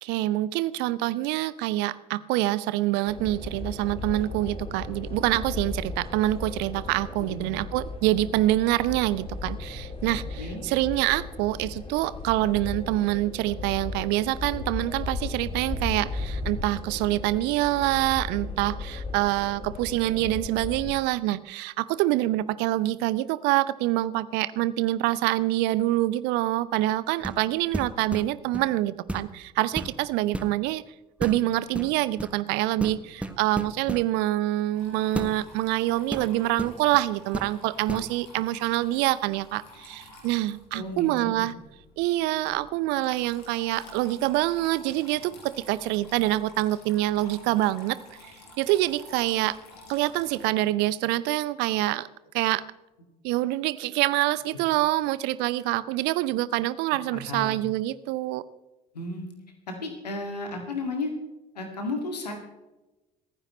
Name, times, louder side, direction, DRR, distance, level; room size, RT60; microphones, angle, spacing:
voice 1, 0.0-30.8 31.2-41.5 42.0-48.0 48.6-49.6 49.9-52.1 52.3-52.6 53.2-58.4, right 16 dB, 55° right, 18 dB, 0.6 m, -26 dB
sound 1, 3.1-20.9, left 3 dB, 25° left, 2.3 m, -36 dB
voice 2, 10.0-10.6 40.7-41.4 54.5-54.6 57.1-57.6 58.9-59.3 59.7-61.1 61.6-62.3, left 2 dB, 80° left, 4 dB, 2.2 m, -34 dB
sound 2, 27.2-27.5 27.7-28.7 29.1-29.4 29.7-30.5 31.2-31.4 31.7-32.4 32.8-34.1 35.1-35.3 36.1-37.0 37.3-37.5 37.9-38.1, right 1 dB, 5° right, 1.2 m, -33 dB
Water tap faucet / Trickle dribble, 34.7-50.4, left 1 dB, 55° left, 5.0 m, -50 dB
26.5 x 9.9 x 3.2 m, 1.1 s
figure-of-eight pair, 55°, 21 cm